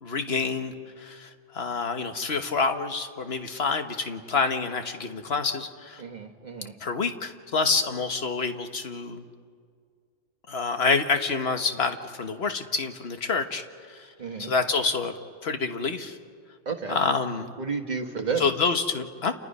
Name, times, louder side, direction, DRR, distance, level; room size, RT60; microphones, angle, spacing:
voice 1, 0.0-6.0 6.8-9.2 10.5-14.1 14.4-15.1 15.4-16.2 16.9-17.5 18.4-19.3, left 4 dB, 55° left, 7 dB, 1.5 m, -27 dB
voice 2, 6.0-6.7 14.2-14.5 16.6-17.0 17.6-18.5, right 5 dB, 35° right, 4 dB, 1.6 m, -31 dB
30.0 x 28.5 x 5.5 m, 2.1 s
omnidirectional pair, 1.3 m